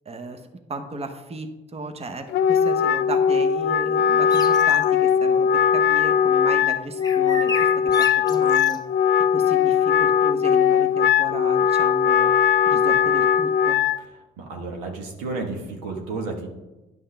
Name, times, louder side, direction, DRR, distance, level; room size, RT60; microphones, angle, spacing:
voice 1, 0.1-0.4 0.7-7.7 8.0-8.8 9.3-12.3 12.6-13.8, right 2 dB, 30° right, 6 dB, 1.0 m, -35 dB
Wind instrument woodwind instrument, 2.3-14.0, left 8 dB, 55° left, 0.4 m, -19 dB
sound 1, 4.3-4.9 7.0-8.8, left 2 dB, 20° left, 0.8 m, -33 dB
voice 2, 14.4-16.5, right 3 dB, 85° right, 1 dB, 1.4 m, -32 dB
10.5 x 5.5 x 3.4 m, 1.1 s
supercardioid pair, 65°, 21 cm